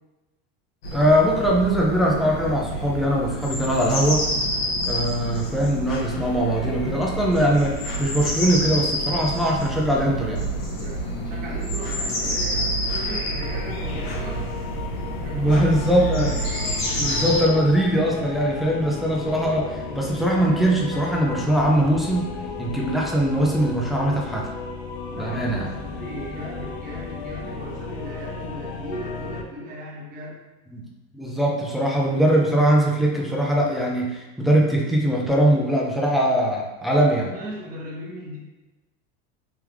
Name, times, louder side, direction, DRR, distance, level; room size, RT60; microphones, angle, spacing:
sound 1, 0.8-17.4, equal, 70° left, 1.3 m, -28 dB
voice 1, 0.9-4.3 4.9-10.5 15.3-16.4 17.0-22.3 22.6-24.5 25.2-25.7 30.7-30.8 31.1-37.3, right 1 dB, ahead, -3 dB, 0.4 m, -21 dB
voice 2, 10.8-14.5 15.2-16.3 16.9-17.1 25.1-30.4 37.3-38.4, right 1 dB, 30° right, -5 dB, 1.2 m, -37 dB
sound 2, 13.4-29.4, left 4 dB, 90° left, 0.6 m, -35 dB
3.5 x 3.4 x 3.1 m, 1.1 s
supercardioid pair, 145°, 31 cm